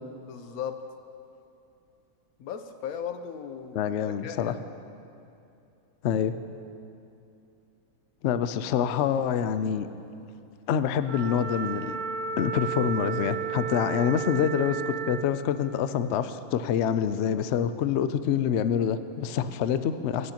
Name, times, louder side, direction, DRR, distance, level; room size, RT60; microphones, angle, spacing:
voice 1, 0.3-0.8 2.4-3.9 4.2-4.6, left 8 dB, 85° left, 7 dB, 1.2 m, -36 dB
voice 2, 3.7-4.5 6.0-6.3 8.2-9.9 10.7-12.0 12.4-20.3, left 8 dB, 65° left, 11 dB, 0.7 m, -26 dB
Wind instrument woodwind instrument, 11.0-15.3, right 7 dB, 55° right, 0.5 m, -33 dB
23.0 x 9.5 x 2.9 m, 2.6 s
omnidirectional pair, 1.5 m